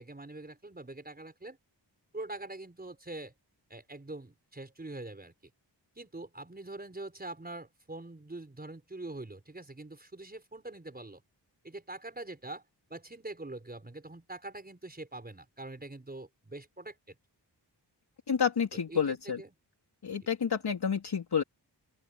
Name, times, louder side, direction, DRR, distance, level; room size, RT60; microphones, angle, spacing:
voice 1, 0.0-1.6 2.1-3.3 3.7-5.3 5.9-11.2 11.6-12.6 12.9-17.1 18.9-19.5, right 2 dB, 20° right, 4.9 m, -44 dB
voice 2, 18.3-19.4 20.0-21.4, left 7 dB, 60° left, 3.3 m, -29 dB
open air
wide cardioid pair, 150°, 43 cm